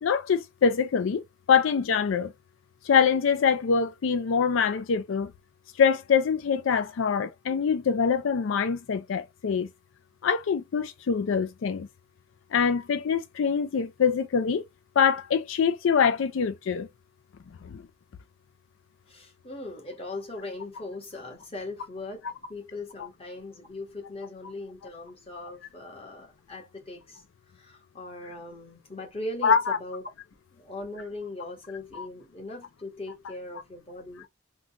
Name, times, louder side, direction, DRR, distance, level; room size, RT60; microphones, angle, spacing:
voice 1, 0.0-1.2 1.5-2.3 2.8-5.3 5.8-9.7 10.2-11.9 12.5-14.6 15.0-16.9 17.6-17.8 23.0-23.1 29.4-29.8 31.9-32.1, left 6 dB, 80° left, 0.4 m, -24 dB
voice 2, 19.1-22.2 22.5-27.2 27.5-30.0 30.5-34.2, left 2 dB, 30° left, 1.2 m, -39 dB
3.8 x 2.3 x 2.8 m
head